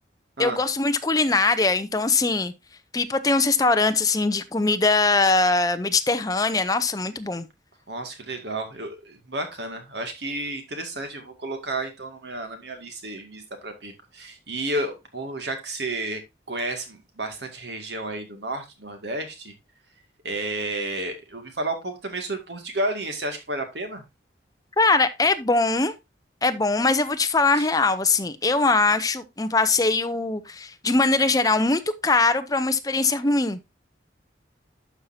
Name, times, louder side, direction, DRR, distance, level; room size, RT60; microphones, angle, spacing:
voice 1, 0.4-2.5 2.9-7.5 24.8-25.9 26.4-33.6, left 3 dB, 20° left, 0.7 m, -21 dB
voice 2, 7.9-16.2 16.5-19.5 20.2-24.0 27.5-27.7, right 2 dB, 70° right, 2.2 m, -31 dB
11.5 x 5.7 x 2.7 m
head